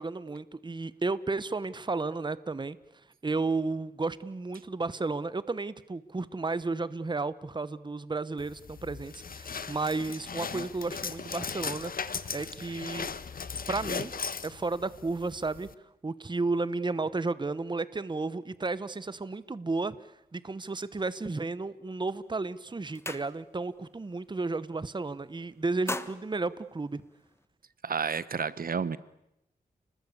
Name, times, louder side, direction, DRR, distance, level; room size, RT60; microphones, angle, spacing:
voice 1, 0.0-2.8 3.2-11.9 12.3-13.1 13.7-14.1 14.4-15.7 16.0-20.0 20.3-27.0, right 3 dB, 30° right, 17 dB, 1.0 m, -33 dB
sound 1, 8.4-15.7, left 5 dB, 60° left, 1.4 m, -38 dB
sound 2, 22.1-22.3 22.6-23.8 24.1-24.4 24.7-25.3 25.6-27.5, left 2 dB, 15° left, 1.4 m, -40 dB
voice 2, 27.8-29.0, right 6 dB, 65° right, 17 dB, 1.0 m, -30 dB
30.0 x 20.5 x 8.4 m, 0.82 s
wide cardioid pair, 80°, 16 cm